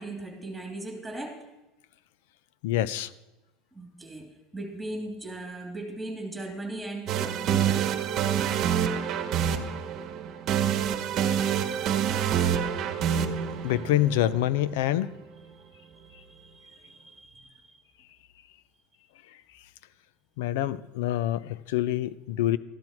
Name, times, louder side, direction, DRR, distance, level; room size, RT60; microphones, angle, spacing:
voice 1, 0.0-1.5 3.7-7.9 12.3-12.9 13.4-13.6 15.5-17.8, right 2 dB, 5° right, 1 dB, 3.0 m, -39 dB
voice 2, 2.6-3.1 13.6-15.1 20.4-22.6, left 13 dB, 85° left, 17 dB, 0.5 m, -26 dB
sound 1, 7.1-15.0, right 9 dB, 45° right, 1.1 m, -27 dB
13.5 x 11.5 x 4.5 m, 1.0 s
supercardioid pair, 135°, 0 cm